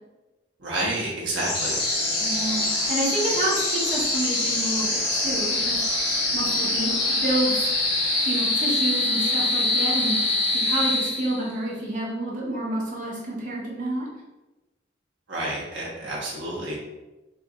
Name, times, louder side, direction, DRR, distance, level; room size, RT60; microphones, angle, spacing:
voice 1, 0.6-1.8 15.3-16.8, right 1 dB, 85° right, -5 dB, 1.1 m, -29 dB
sound 1, 1.3-11.6, left 2 dB, 75° left, 1.4 m, -24 dB
voice 2, 2.2-5.8 6.3-7.7 8.3-14.1, right 1 dB, 45° right, -5 dB, 1.0 m, -29 dB
4.5 x 2.6 x 2.4 m, 1.1 s
head